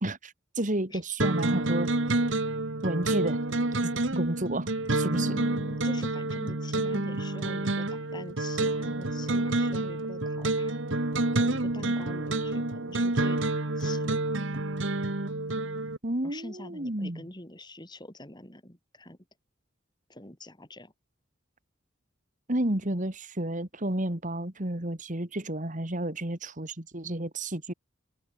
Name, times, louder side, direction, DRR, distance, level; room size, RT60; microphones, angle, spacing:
voice 1, 0.0-1.9 2.8-3.4 3.8-5.3 16.0-17.3 22.5-27.7, right 1 dB, 40° right, 2.5 m, -31 dB
sound 1, 1.2-16.0, right 2 dB, 60° right, 1.7 m, -28 dB
voice 2, 5.1-10.8 11.3-13.4 13.7-14.2 16.2-19.2 20.1-20.9, left 1 dB, 20° left, 3.3 m, -44 dB
open air
head